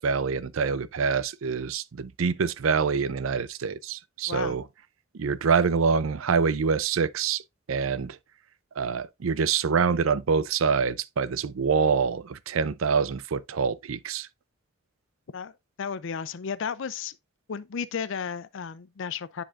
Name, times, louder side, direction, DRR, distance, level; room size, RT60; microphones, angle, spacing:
voice 1, 0.0-4.6 5.1-7.4 7.7-8.2 8.8-14.3, right 5 dB, 75° right, 0.5 m, -25 dB
voice 2, 4.3-4.6 15.3-15.5 15.8-17.2 17.5-19.4, left 6 dB, 65° left, 0.5 m, -33 dB
10.0 x 4.3 x 2.5 m
head